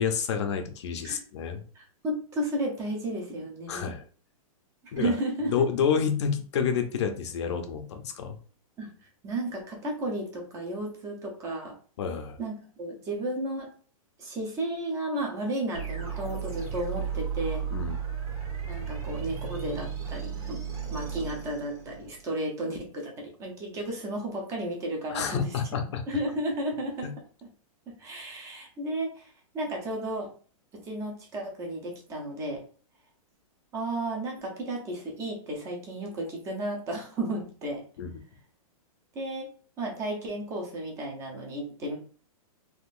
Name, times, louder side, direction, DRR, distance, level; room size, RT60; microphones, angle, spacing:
voice 1, 0.0-1.6 3.7-4.0 4.9-5.2 5.5-8.4 12.0-12.4 17.7-18.0 25.1-26.0 27.0-27.1 38.0-38.1, left 7 dB, 50° left, 6 dB, 0.6 m, -29 dB
voice 2, 1.7-3.9 4.8-5.5 8.8-8.9 9.2-11.8 12.4-13.7 14.2-17.6 18.7-20.6 20.9-25.5 26.1-27.1 27.9-30.3 30.7-32.6 33.7-37.8 39.1-39.5 39.8-42.0, right 1 dB, 15° right, 0 dB, 0.6 m, -33 dB
sound 1, 15.7-22.2, right 7 dB, 80° right, 1.6 m, -34 dB
3.6 x 2.5 x 2.4 m, 0.41 s
hypercardioid pair, 165°, 19 cm